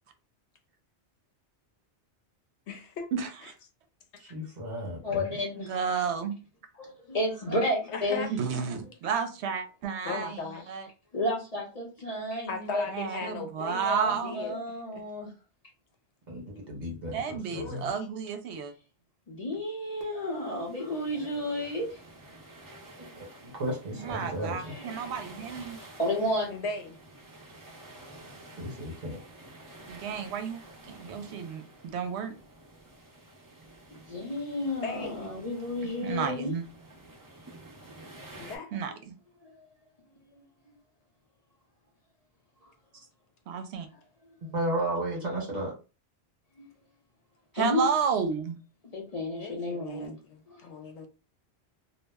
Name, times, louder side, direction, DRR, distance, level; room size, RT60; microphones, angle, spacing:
voice 1, 2.7-3.1 4.2-4.3 7.9-8.3 10.0-10.6 12.5-14.6 14.9-15.0 17.5-18.1 26.5-27.0 34.8-35.3 38.4-38.7 49.3-51.1, left 4 dB, 80° left, 0.9 m, -38 dB
voice 2, 4.2-5.2 16.3-17.9 23.2-23.3 23.6-24.7 28.6-29.2 44.5-45.7, right 1 dB, 40° right, 1.2 m, -33 dB
voice 3, 5.0-5.7 7.1-8.2 11.1-12.8 13.6-15.3 19.3-22.0 24.4-25.0 26.0-26.5 33.9-36.5 39.4-39.7 40.3-40.4 40.7-40.8 46.6-46.7 47.5-47.9 48.9-50.2 50.5-50.6, left 1 dB, 40° left, 0.7 m, -32 dB
voice 4, 5.7-6.3 8.3-10.9 12.9-14.6 17.1-18.7 23.9-25.8 29.9-30.6 30.9-32.4 36.0-36.6 38.7-39.1 43.5-43.9 47.5-48.6, right 6 dB, 75° right, 0.8 m, -31 dB
sound 1, 20.0-38.6, right 1 dB, 25° right, 0.5 m, -50 dB
2.3 x 2.0 x 3.4 m
omnidirectional pair, 1.1 m